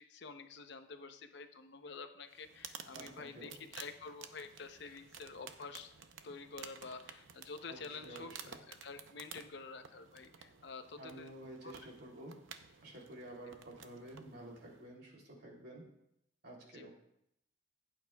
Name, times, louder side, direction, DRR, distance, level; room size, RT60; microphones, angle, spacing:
voice 1, 0.0-5.9 6.2-11.3 11.6-11.7 16.7-16.9, left 4 dB, 60° left, 8 dB, 0.7 m, -49 dB
sound 1, 2.3-14.9, right 7 dB, 85° right, 0.7 m, -54 dB
voice 2, 2.9-3.6 7.7-8.6 11.0-12.4 12.8-15.9 16.4-16.9, right 1 dB, 55° right, -1 dB, 2.9 m, -51 dB
15.5 x 8.8 x 2.3 m, 0.76 s
head